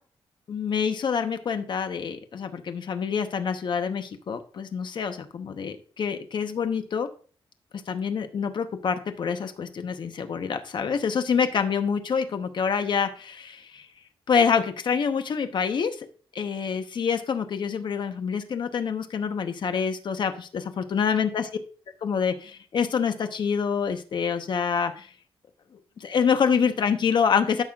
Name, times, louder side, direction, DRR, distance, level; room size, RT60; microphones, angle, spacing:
voice 1, 0.5-7.1 7.9-13.8 14.3-16.0 16.3-21.5 22.0-25.1 26.0-27.6, left 6 dB, 55° left, 8 dB, 0.9 m, -26 dB
13.0 x 5.6 x 2.4 m, 0.40 s
wide cardioid pair, 140°, 9 cm